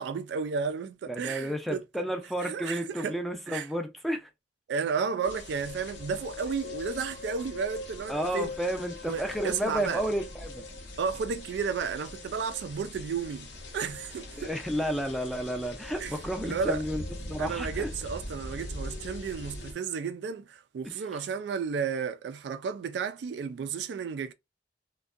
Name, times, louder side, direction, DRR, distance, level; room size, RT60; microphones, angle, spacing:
voice 1, 0.0-1.8 2.4-3.2 3.5-3.7 4.7-8.5 9.1-10.1 11.0-13.5 13.7-14.5 16.0-16.1 16.4-16.8 17.4-24.3, right 6 dB, 65° right, 0.3 m, -33 dB
voice 2, 1.1-4.3 8.1-10.7 14.4-17.9 20.8-20.9, equal, ahead, 0.4 m, -32 dB
sound 1, 5.2-19.7, left 2 dB, 90° left, 0.8 m, -41 dB
2.5 x 2.2 x 2.4 m
head